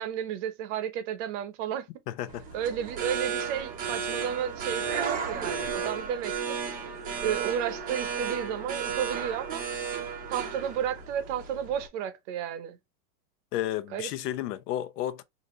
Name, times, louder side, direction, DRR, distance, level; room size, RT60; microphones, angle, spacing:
voice 1, 0.0-1.9 2.5-6.6 7.2-9.6 10.3-12.8 13.9-14.1, right 9 dB, 50° right, 0.9 m, -32 dB
voice 2, 2.1-2.4 13.5-15.2, left 12 dB, 75° left, 0.9 m, -32 dB
sound 1, 2.3-11.9, right 6 dB, 20° right, 0.7 m, -33 dB
5.1 x 2.7 x 3.1 m
supercardioid pair, 160°, 48 cm